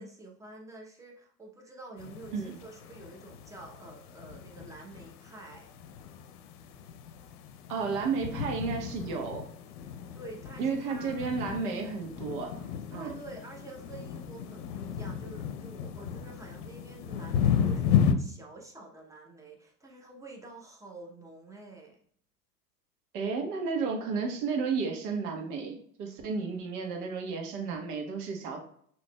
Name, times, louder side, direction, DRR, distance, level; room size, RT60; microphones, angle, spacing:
voice 1, 0.0-5.7 10.1-11.3 12.9-22.0, right 2 dB, 5° right, 0 dB, 0.8 m, -48 dB
sound 1, 2.0-18.1, left 8 dB, 65° left, 0.7 m, -34 dB
voice 2, 7.7-9.4 10.6-12.6 12.9-13.1 23.1-28.6, right 5 dB, 70° right, 3 dB, 1.3 m, -32 dB
6.1 x 3.0 x 2.2 m, 0.63 s
hypercardioid pair, 105°, 48 cm